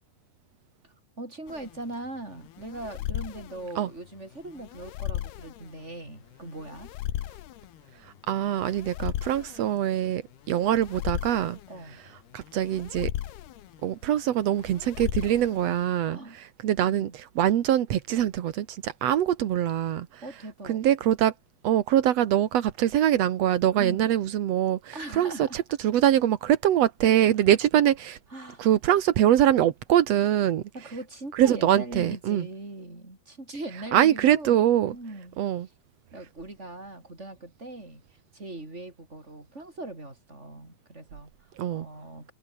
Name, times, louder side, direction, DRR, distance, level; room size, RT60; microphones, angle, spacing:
voice 1, 0.8-6.9 11.7-12.0 16.1-16.4 16.8-17.1 20.2-20.8 23.7-24.1 24.9-25.6 28.3-28.7 30.7-34.6 34.9-35.4 36.1-38.0 38.3-42.3, right 2 dB, 15° right, 6.4 m, -40 dB
sound 1, 1.5-16.0, left 13 dB, 75° left, 3.2 m, -37 dB
voice 2, 8.3-10.2 10.5-11.6 12.3-13.1 13.8-16.2 16.6-20.1 20.7-21.3 21.6-28.2 28.6-30.6 31.3-32.4 33.9-34.9 35.4-35.7 41.6-41.9, right 11 dB, 75° right, 1.5 m, -23 dB
omnidirectional pair, 4.8 m